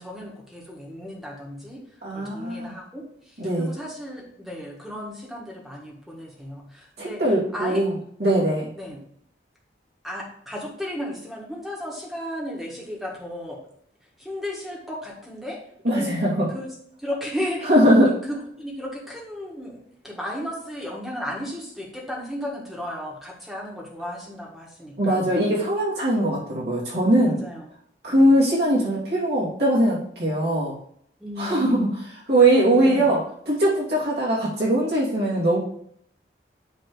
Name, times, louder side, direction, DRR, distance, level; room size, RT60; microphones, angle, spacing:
voice 1, 0.0-1.8 2.1-3.0 3.6-7.2 7.5-7.8 8.8-9.0 10.0-13.6 14.2-15.6 15.9-16.2 16.5-16.7 17.0-17.7 18.3-25.3 27.2-27.6 28.1-28.3 31.2-31.8 32.7-33.1, left 1 dB, ahead, -3 dB, 1.7 m, -34 dB
voice 2, 2.0-2.8 3.4-3.7 7.0-8.7 15.8-16.5 17.6-18.1 25.0-27.4 28.0-30.8 31.4-35.6, right 1 dB, 60° right, -7 dB, 2.8 m, -21 dB
9.5 x 3.4 x 4.8 m, 0.67 s
head